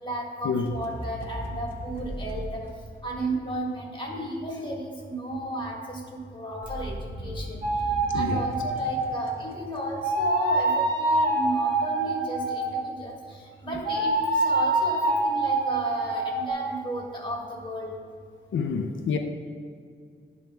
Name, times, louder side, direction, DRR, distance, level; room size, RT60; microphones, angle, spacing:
voice 1, 0.0-2.6 3.0-7.6 8.1-13.2 13.6-17.9, right 1 dB, 25° left, -2 dB, 1.6 m, -34 dB
sound 1, 0.6-3.6 6.6-10.1, right 1 dB, 10° right, 1.0 m, -37 dB
sound 2, 7.6-9.4 10.0-12.9 13.8-16.5, right 2 dB, 50° right, 1.4 m, -25 dB
voice 2, 8.1-8.4 18.5-19.2, left 5 dB, 70° left, 4 dB, 0.5 m, -27 dB
10.5 x 3.5 x 3.4 m, 2.2 s
cardioid pair, 70°, 20 cm